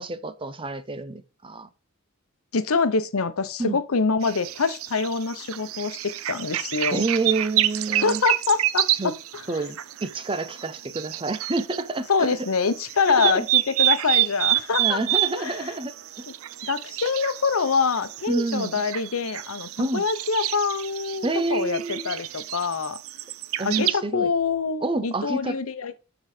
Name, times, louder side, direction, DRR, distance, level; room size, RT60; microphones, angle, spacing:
voice 1, 0.0-1.7 3.6-3.8 6.9-8.2 9.0-9.1 9.5-12.3 13.2-13.5 14.8-16.2 18.3-18.8 19.8-20.0 21.2-22.1 23.6-24.3 24.8-25.6, right 3 dB, 25° right, 0.7 m, -28 dB
voice 2, 2.5-7.1 7.9-9.7 12.0-15.8 16.3-16.4 16.6-23.0 23.6-25.9, left 5 dB, 90° left, 0.8 m, -25 dB
sound 1, 4.2-11.8 12.2-23.9, right 15 dB, 75° right, 0.5 m, -28 dB
9.9 x 4.0 x 4.9 m
head